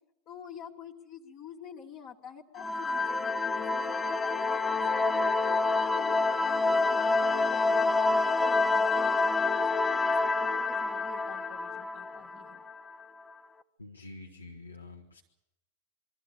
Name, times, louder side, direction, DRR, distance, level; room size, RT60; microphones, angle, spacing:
voice 1, 0.3-12.6, left 7 dB, 35° left, 3 dB, 2.0 m, -48 dB
sound 1, 2.6-12.9, left 3 dB, 15° left, 0.9 m, -27 dB
voice 2, 13.8-15.2, left 3 dB, 85° left, 1 dB, 1.5 m, -47 dB
23.0 x 14.0 x 9.9 m, 0.90 s
figure-of-eight pair, 90°, 0 cm